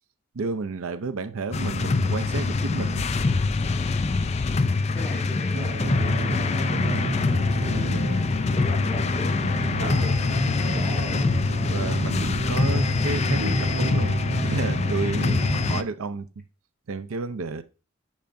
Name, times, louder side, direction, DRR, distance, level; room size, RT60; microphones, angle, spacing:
voice 1, 0.3-3.1 7.7-8.1 9.8-10.2 11.6-14.2 14.4-16.3 16.9-17.6, right 4 dB, 85° right, 0.6 m, -31 dB
sound 1, 1.5-15.8, left 3 dB, 30° left, 0.4 m, -24 dB
voice 2, 4.0-4.4 4.9-7.4 8.5-9.5 9.8-11.3 11.7-11.9, left 1 dB, 5° left, 2.9 m, -38 dB
sound 2, 5.5-15.7, right 3 dB, 60° right, 1.1 m, -33 dB
10.5 x 5.6 x 2.6 m
head